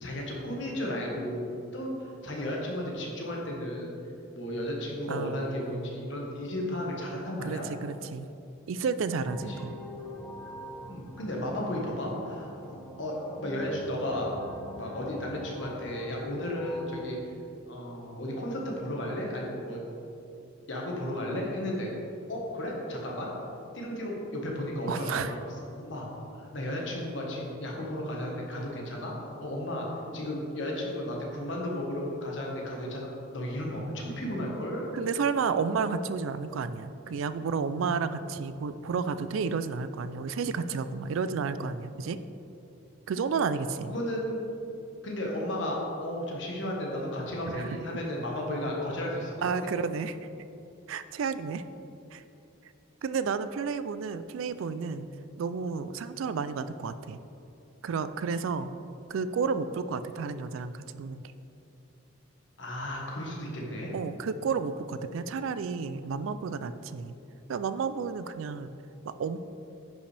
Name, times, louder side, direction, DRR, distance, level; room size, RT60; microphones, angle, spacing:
voice 1, 0.0-4.0 4.3-7.7 9.4-9.6 10.9-12.5 13.0-14.3 14.7-17.2 17.7-19.8 20.7-21.9 22.3-23.3 23.7-25.4 25.8-26.1 26.4-29.9 30.1-34.9 43.9-44.4 45.0-49.7 62.6-63.9, left 1 dB, 60° left, -2 dB, 1.3 m, -34 dB
voice 2, 5.1-5.9 7.5-8.3 8.7-9.7 24.9-25.3 34.9-42.2 43.1-43.9 47.5-47.8 49.4-50.1 50.9-51.6 52.1-52.2 53.0-55.1 55.4-57.2 57.8-58.7 59.1-61.2 63.9-67.1 67.5-68.7 69.0-69.4, right 5 dB, 70° right, 13 dB, 0.3 m, -31 dB
sound 1, 9.2-17.1, left 1 dB, 5° left, 1.1 m, -44 dB
10.5 x 5.2 x 3.4 m, 2.7 s
head